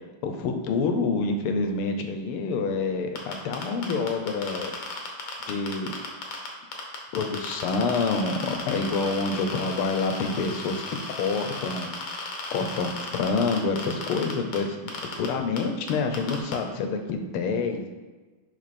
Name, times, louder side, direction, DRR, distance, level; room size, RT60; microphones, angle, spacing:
voice 1, 0.0-4.7 5.5-5.9 7.1-10.8 11.2-11.9 12.5-14.9 15.2-17.9, left 4 dB, 90° left, 6 dB, 1.7 m, -27 dB
sound 1, 3.2-6.5 6.7-14.6 14.9-15.3 15.6-15.7 15.9-16.5, left 3 dB, 75° left, 2.0 m, -35 dB
6.4 x 5.6 x 4.3 m, 1.3 s
omnidirectional pair, 2.4 m